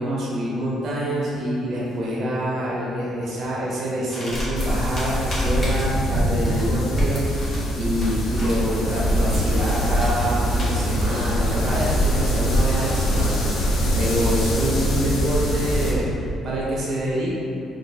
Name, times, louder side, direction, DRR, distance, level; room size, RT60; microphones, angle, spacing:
voice 1, 0.0-16.1 16.4-17.3, equal, 60° right, -6 dB, 0.7 m, -26 dB
sound 1, 1.1-14.7, left 1 dB, 45° left, 1.2 m, -42 dB
sound 2, 4.3-11.9, equal, 10° left, 1.3 m, -28 dB
sound 3, 4.5-15.9, equal, 80° left, 0.7 m, -23 dB
4.0 x 2.5 x 2.7 m, 2.6 s
cardioid pair, 90°, 0 cm